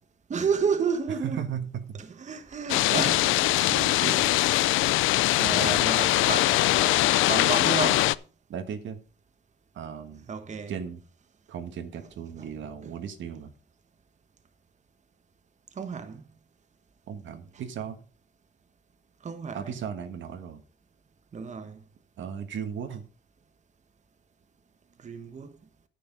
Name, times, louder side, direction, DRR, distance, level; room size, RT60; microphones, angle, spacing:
voice 1, 0.3-1.4 2.0-3.5 4.0-4.2 5.4-8.1 10.3-10.7 12.4-12.5 12.8-13.0 15.8-16.2 19.2-19.8 21.3-21.8 25.0-25.6, right 5 dB, 35° right, 1.1 m, -31 dB
voice 2, 1.2-2.0 2.7-2.8 3.6-4.3 5.5-5.9 8.5-9.0 9.7-10.3 10.7-11.0 11.5-13.5 17.1-18.0 19.5-20.6 22.2-23.0, right 8 dB, 70° right, 1.4 m, -36 dB
sound 1, 2.7-8.1, left 17 dB, 90° left, 0.4 m, -22 dB
9.9 x 6.9 x 5.2 m
cardioid pair, 90°, 20 cm